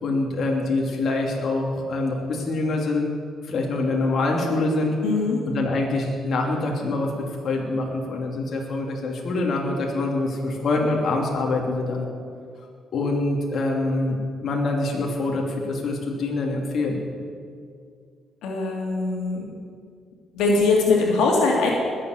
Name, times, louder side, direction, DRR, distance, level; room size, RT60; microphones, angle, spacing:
voice 1, 0.0-3.1 3.4-5.0 5.5-12.1 12.9-17.0, left 2 dB, 60° left, -1 dB, 2.9 m, -25 dB
voice 2, 5.0-5.4 18.4-19.5 20.3-21.7, left 3 dB, 90° left, -1 dB, 2.7 m, -21 dB
20.5 x 7.6 x 8.1 m, 2.2 s
cardioid pair, 90°, 0 cm